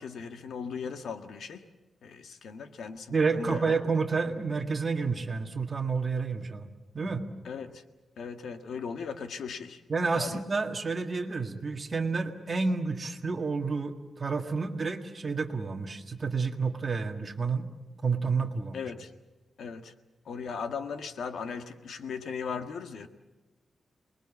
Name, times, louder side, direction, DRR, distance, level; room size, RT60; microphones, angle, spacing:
voice 1, 0.0-1.6 2.0-3.7 7.4-7.8 8.2-9.8 10.2-10.4 18.7-19.1 19.6-19.9 20.2-23.1, left 6 dB, 85° left, 7 dB, 1.6 m, -38 dB
voice 2, 3.1-6.7 6.9-7.2 9.9-17.7 18.0-18.8, right 4 dB, 30° right, 5 dB, 1.7 m, -30 dB
28.0 x 21.0 x 7.2 m, 1.1 s
wide cardioid pair, 175°, 0 cm